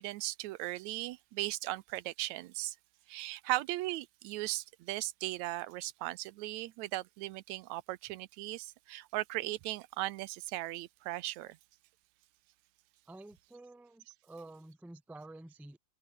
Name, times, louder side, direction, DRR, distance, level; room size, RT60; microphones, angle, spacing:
voice 1, 0.0-2.8 3.1-11.6, right 17 dB, 80° right, 2.0 m, -37 dB
voice 2, 13.1-15.8, right 2 dB, ahead, 0.4 m, -50 dB
omnidirectional pair, 3.3 m